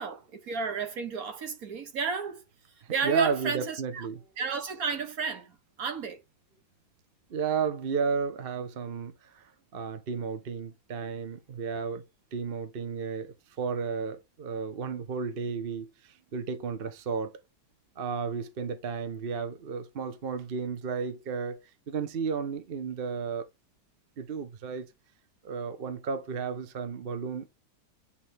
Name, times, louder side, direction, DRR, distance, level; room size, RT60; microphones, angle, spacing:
voice 1, 0.0-2.4 2.9-4.1 4.4-6.2, right 5 dB, 60° right, 1.6 m, -33 dB
voice 2, 2.8-4.2 7.3-12.0 12.3-17.3 18.0-23.5 24.2-24.9 25.4-27.5, right 5 dB, 45° right, 0.8 m, -33 dB
8.5 x 3.3 x 3.4 m
omnidirectional pair, 1.8 m